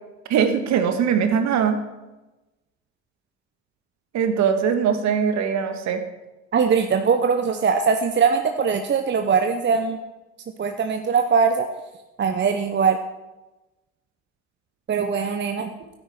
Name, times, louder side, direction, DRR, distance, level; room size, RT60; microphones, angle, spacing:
voice 1, 0.3-1.8 4.1-6.0, right 7 dB, 50° right, 7 dB, 1.7 m, -21 dB
voice 2, 6.5-10.0 10.6-11.7 12.2-13.0 14.9-15.7, right 6 dB, 30° right, 6 dB, 0.9 m, -21 dB
12.5 x 9.9 x 4.5 m, 1.0 s
hypercardioid pair, 60°, 35 cm